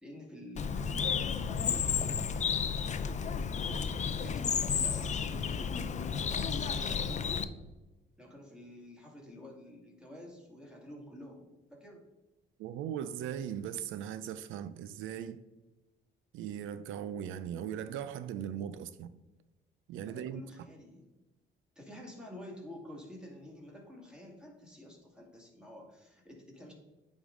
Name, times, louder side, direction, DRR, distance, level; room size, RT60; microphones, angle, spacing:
voice 1, 0.0-2.3 3.6-7.5 8.2-12.0 20.1-21.0 21.8-26.7, left 1 dB, 5° right, 2.1 m, -49 dB
Bird, 0.6-7.5, left 6 dB, 35° left, 0.5 m, -32 dB
voice 2, 12.6-15.4 16.3-19.1 19.9-20.4, right 9 dB, 90° right, 0.4 m, -39 dB
9.4 x 3.6 x 3.7 m
cardioid pair, 90°, 20 cm